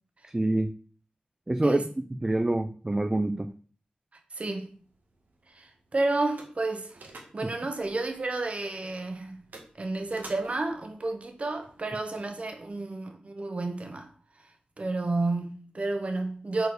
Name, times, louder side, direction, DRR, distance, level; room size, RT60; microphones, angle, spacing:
voice 1, 0.3-0.7 1.5-3.5 7.4-7.5, right 1 dB, 20° right, 0.5 m, -26 dB
voice 2, 4.3-4.7 5.5-7.0 7.3-9.4 9.8-14.1 14.8-16.7, right 2 dB, 45° right, 1.6 m, -31 dB
sound 1, 4.7-12.7, right 2 dB, 80° right, 1.9 m, -53 dB
6.8 x 4.5 x 6.5 m
wide cardioid pair, 80°, 3 cm